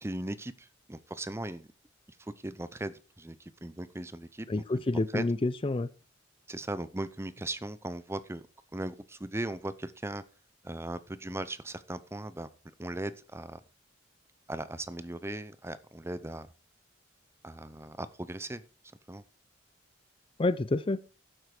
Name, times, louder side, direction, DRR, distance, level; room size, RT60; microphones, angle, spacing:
voice 1, 0.0-1.7 2.2-3.4 3.6-4.6 5.1-5.2 6.5-8.4 8.7-10.2 10.6-12.5 12.8-13.6 14.5-16.5 17.4-18.6 19.1-19.2, right 1 dB, 15° right, 14 dB, 0.7 m, -38 dB
voice 2, 4.5-5.9 20.4-21.0, left 2 dB, 25° left, 16 dB, 0.5 m, -28 dB
12.0 x 7.9 x 4.9 m, 0.35 s
head